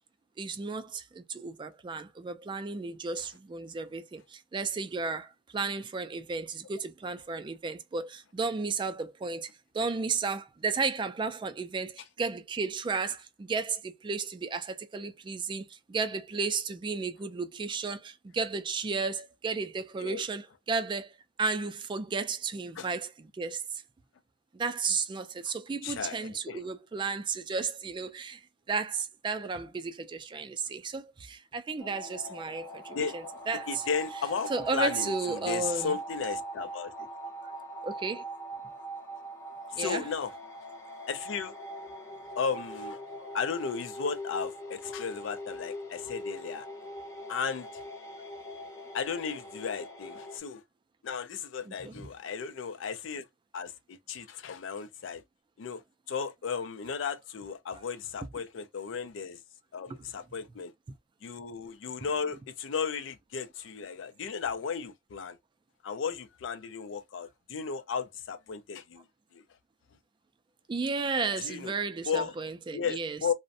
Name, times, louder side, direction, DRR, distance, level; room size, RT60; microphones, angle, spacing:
voice 1, 0.4-9.5 9.7-23.8 24.5-28.4 28.7-33.8 34.5-36.0 37.4-37.5 37.8-38.2 39.8-40.0 43.2-43.3 51.7-51.9 70.7-73.2, right 4 dB, 25° right, 0.3 m, -33 dB
voice 2, 25.8-26.7 32.9-33.2 33.7-37.1 39.7-40.3 41.1-41.5 42.4-43.0 43.3-46.7 47.3-47.8 48.9-50.6 51.0-53.3 53.5-55.2 55.6-55.8 56.1-59.4 59.7-60.7 61.2-65.4 65.8-69.0 69.3-69.4 71.4-71.7 72.1-72.3 72.7-73.3, left 6 dB, 80° left, 0.4 m, -35 dB
sound 1, 31.8-50.4, right 1 dB, 15° left, 0.6 m, -42 dB
2.5 x 2.1 x 2.6 m
head